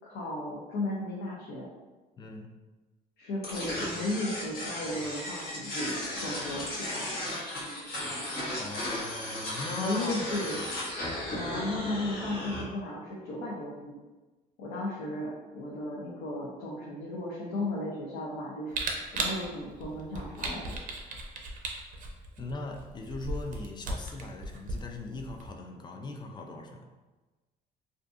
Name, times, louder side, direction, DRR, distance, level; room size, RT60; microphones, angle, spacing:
voice 1, 0.0-1.7 3.2-5.9 6.2-7.2 9.8-10.6 11.3-14.0 14.6-18.8 19.1-20.7, left 1 dB, 90° left, -5 dB, 0.6 m, -35 dB
voice 2, 2.2-2.5 8.6-10.3 22.4-26.9, left 2 dB, 25° left, 3 dB, 0.3 m, -39 dB
sound 1, 3.4-12.6, left 1 dB, 60° left, 1.0 m, -35 dB
Camera, 18.7-25.5, right 3 dB, 55° right, 0.5 m, -36 dB
2.5 x 2.4 x 2.4 m, 1.2 s
cardioid pair, 110°, 17 cm